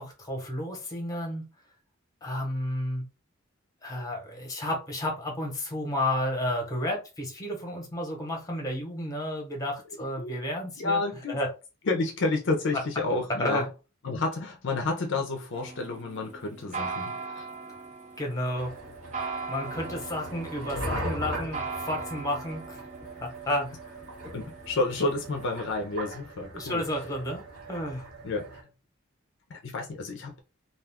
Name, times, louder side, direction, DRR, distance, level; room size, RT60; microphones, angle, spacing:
voice 1, 0.0-1.4 2.2-3.0 3.8-11.0 11.3-11.5 13.4-13.6 18.2-18.7 19.5-22.8 23.2-23.9 26.5-27.4 27.7-28.1, left 1 dB, 15° left, 0.9 m, -31 dB
voice 2, 10.8-11.4 11.9-13.7 14.0-17.5 24.3-26.9 28.2-28.7 29.5-30.4, left 3 dB, 60° left, 0.5 m, -30 dB
sound 1, 15.5-25.7, right 4 dB, 35° right, 0.6 m, -40 dB
sound 2, 18.6-28.6, right 1 dB, 85° right, 1.3 m, -39 dB
2.4 x 2.3 x 3.4 m
head